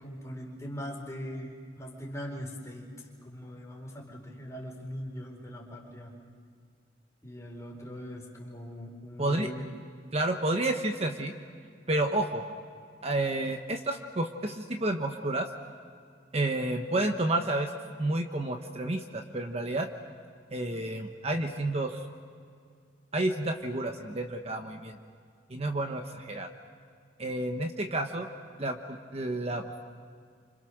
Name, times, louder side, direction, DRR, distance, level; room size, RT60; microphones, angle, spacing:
voice 1, 0.0-6.1 7.2-9.7, equal, 15° left, -1 dB, 4.5 m, -41 dB
voice 2, 10.1-11.3 11.9-12.4 13.0-15.5 16.3-17.7 18.0-19.9 20.5-22.0 23.1-25.0 25.5-26.5 27.2-28.3 28.6-29.8, right 2 dB, 35° right, 4 dB, 1.1 m, -30 dB
29.5 x 26.5 x 6.5 m, 2.2 s
head